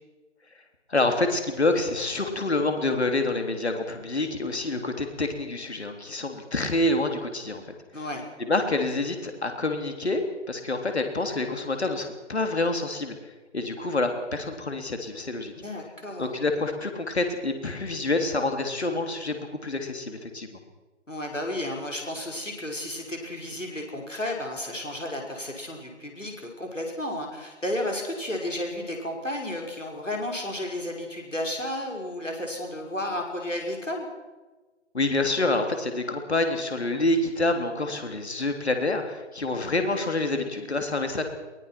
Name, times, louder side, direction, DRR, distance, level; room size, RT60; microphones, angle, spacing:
voice 1, 0.9-7.6 8.4-10.2 10.5-13.1 13.5-15.5 16.2-20.6 34.9-41.2, left 2 dB, 60° left, 6 dB, 3.4 m, -27 dB
voice 2, 7.9-8.2 15.5-16.3 21.1-34.1, left 1 dB, 85° left, 1 dB, 5.8 m, -32 dB
23.0 x 18.5 x 6.0 m, 1.2 s
figure-of-eight pair, 150°, 37 cm